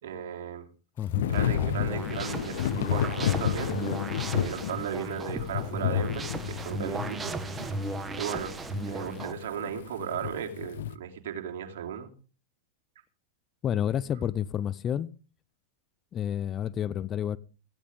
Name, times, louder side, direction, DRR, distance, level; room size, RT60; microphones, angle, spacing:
voice 1, 0.0-0.6 1.3-3.8 4.3-7.4 8.2-8.6 8.9-12.1, right 8 dB, 65° right, 3.2 m, -36 dB
voice 2, 1.0-1.3 13.6-15.1 16.1-17.4, left 9 dB, 30° left, 0.7 m, -30 dB
Thunder / Rain, 1.1-10.9, left 11 dB, 70° left, 0.9 m, -31 dB
sound 1, 1.3-9.3, right 3 dB, 20° right, 1.7 m, -36 dB
16.5 x 15.5 x 3.7 m
hypercardioid pair, 100°, 0 cm